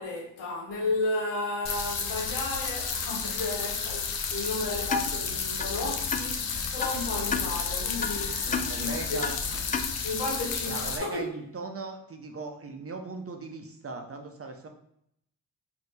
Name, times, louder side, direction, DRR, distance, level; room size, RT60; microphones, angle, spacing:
voice 1, 0.0-9.6 10.0-11.3, left 2 dB, 85° left, -2 dB, 1.2 m, -33 dB
sound 1, 1.7-11.0, left 5 dB, 60° left, 0.7 m, -32 dB
sound 2, 4.8-10.2, left 5 dB, 20° left, 0.3 m, -35 dB
voice 2, 8.5-9.4 10.6-14.7, right 3 dB, 35° right, 4 dB, 0.7 m, -39 dB
4.1 x 2.7 x 3.3 m, 0.75 s
supercardioid pair, 45°, 41 cm